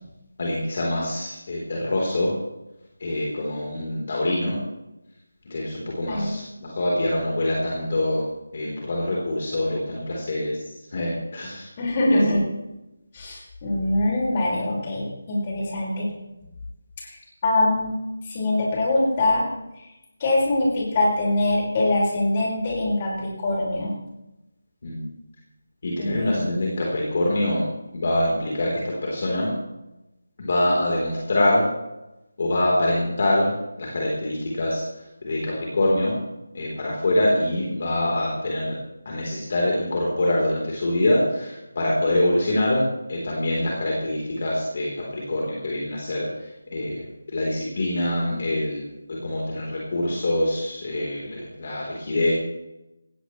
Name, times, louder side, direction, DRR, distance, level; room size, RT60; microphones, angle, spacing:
voice 1, 0.4-2.3 3.0-4.6 5.5-8.2 8.5-10.5 10.9-11.7 12.1-12.2 24.8-25.0 25.8-27.7 27.9-28.7 29.0-29.5 30.4-31.6 32.4-33.5 33.8-34.8 35.2-36.1 36.5-38.8 39.1-42.8 43.1-46.3 46.7-47.0 47.3-48.9 49.2-52.3, left 1 dB, 45° left, -3 dB, 3.9 m, -24 dB
voice 2, 6.0-6.4 11.8-12.4 13.1-16.1 17.0-17.2 17.4-18.0 18.2-19.5 20.2-23.9 26.0-26.4, left 1 dB, 25° left, -3 dB, 5.3 m, -23 dB
17.5 x 16.5 x 3.3 m, 0.95 s
figure-of-eight pair, 170°, 0 cm